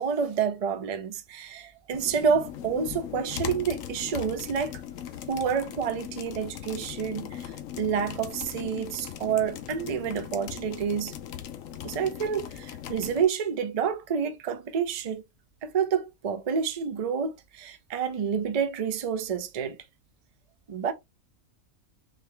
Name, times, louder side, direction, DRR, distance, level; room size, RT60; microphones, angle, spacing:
voice 1, 0.0-4.8 5.3-11.2 11.8-15.2 15.6-19.8 20.7-20.9, right 7 dB, 55° right, 0.4 m, -29 dB
sound 1, 1.9-13.2, left 10 dB, 70° left, 1.0 m, -39 dB
3.7 x 3.2 x 3.2 m
omnidirectional pair, 1.5 m